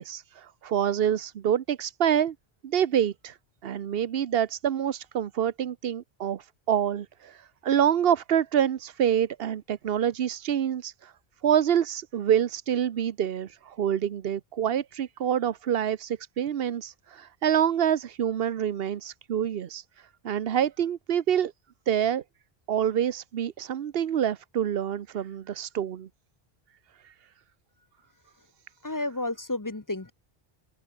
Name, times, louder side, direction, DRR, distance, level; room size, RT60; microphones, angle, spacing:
voice 1, 0.0-2.3 2.6-3.4 3.6-11.1 11.4-21.5 21.9-22.2 22.7-26.1 27.0-27.1, right 9 dB, 70° right, 1.0 m, -27 dB
voice 2, 28.8-30.1, left 2 dB, 20° left, 1.0 m, -31 dB
open air
omnidirectional pair, 1.1 m